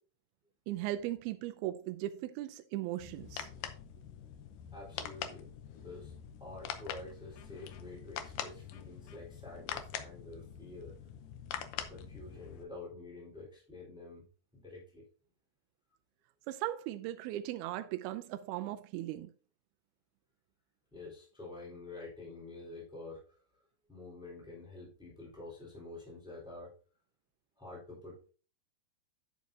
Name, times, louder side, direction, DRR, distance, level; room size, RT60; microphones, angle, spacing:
voice 1, 0.7-3.5 16.5-19.3, right 14 dB, 80° right, 2.3 m, -38 dB
sound 1, 3.0-12.6, left 9 dB, 75° left, 2.0 m, -44 dB
voice 2, 4.7-6.1 6.4-11.0 11.7-14.3 14.5-15.0 20.9-23.4 23.9-26.7 27.6-28.2, left 2 dB, ahead, 3.4 m, -48 dB
10.0 x 7.4 x 2.7 m
omnidirectional pair, 4.8 m